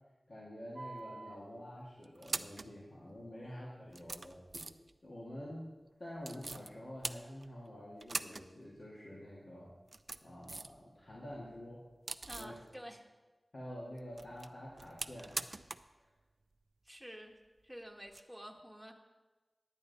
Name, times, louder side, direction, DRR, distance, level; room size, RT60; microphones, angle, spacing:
voice 1, 0.3-4.7 5.0-5.7 6.0-9.7 10.2-11.8 12.3-12.6 13.5-15.4 16.0-16.1, equal, 65° left, -7 dB, 2.1 m, -48 dB
sound 1, 0.8-1.4 2.0-2.7 3.5-3.6 3.9-4.9 6.2-6.7 7.0-7.7 8.0-8.5 8.8-8.9 9.7-10.8 11.1-12.6 14.0-15.9 16.2-16.3 18.1-18.2, right 3 dB, 55° right, 0.4 m, -43 dB
voice 2, 12.3-13.0 16.8-17.3 17.6-18.9, equal, 5° right, 2 dB, 1.2 m, -49 dB
10.0 x 10.0 x 4.1 m, 1.2 s
wide cardioid pair, 75°, 0 cm